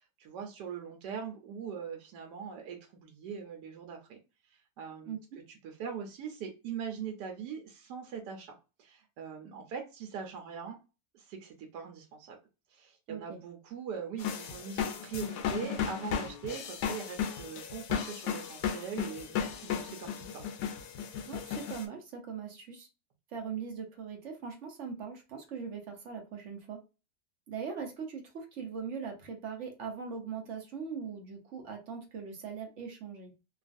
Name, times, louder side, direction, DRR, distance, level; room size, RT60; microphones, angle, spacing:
voice 1, 0.0-4.2 4.5-5.2 5.5-8.5 8.8-10.8 11.1-12.4 12.7-20.4, right 7 dB, 75° right, 2 dB, 1.2 m, -41 dB
voice 2, 13.1-13.4 21.3-22.9 23.3-26.8 27.5-33.3, right 6 dB, 60° right, 2 dB, 0.9 m, -40 dB
sound 1, 14.2-21.9, left 7 dB, 80° left, 1.2 m, -35 dB
3.0 x 2.4 x 2.5 m, 0.29 s
omnidirectional pair, 1.8 m